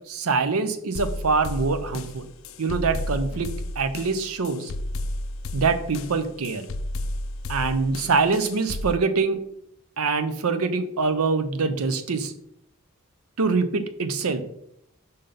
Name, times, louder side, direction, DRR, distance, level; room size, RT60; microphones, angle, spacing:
voice 1, 0.1-2.3 2.6-3.5 3.8-4.7 5.5-6.7 7.5-9.4 10.0-12.3 13.4-14.4, right 4 dB, 90° right, 11 dB, 0.6 m, -24 dB
sound 1, 0.9-9.0, left 1 dB, 65° left, 0.4 m, -32 dB
5.5 x 3.9 x 5.1 m, 0.76 s
head